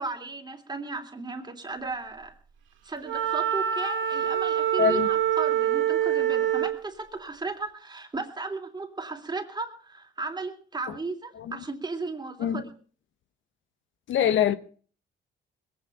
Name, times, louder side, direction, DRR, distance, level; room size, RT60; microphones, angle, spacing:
voice 1, 0.0-2.3 2.8-12.7, right 3 dB, 20° right, 3.1 m, -35 dB
Wind instrument woodwind instrument, 3.1-6.8, right 10 dB, 80° right, 2.1 m, -25 dB
voice 2, 4.8-5.1 11.4-11.6 12.4-12.6 14.1-14.5, left 9 dB, 75° left, 1.1 m, -24 dB
21.0 x 9.3 x 5.6 m
cardioid pair, 90°, 20 cm